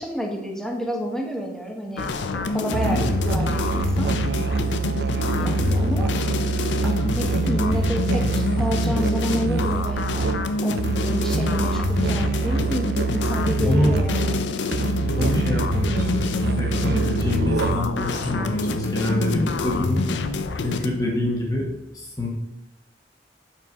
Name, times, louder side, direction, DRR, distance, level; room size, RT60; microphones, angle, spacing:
voice 1, 0.0-4.1 5.4-6.1 6.8-10.2 10.6-14.3 21.0-21.3, equal, 5° left, 1 dB, 1.0 m, -29 dB
sound 1, 2.0-20.9, left 3 dB, 85° left, 0.5 m, -26 dB
Musical instrument, 2.7-18.0, right 5 dB, 60° right, 0.4 m, -26 dB
voice 2, 13.6-13.9 15.2-20.0 20.6-21.7 21.9-22.3, left 1 dB, 20° left, -2 dB, 1.3 m, -26 dB
5.8 x 4.6 x 5.3 m, 0.90 s
head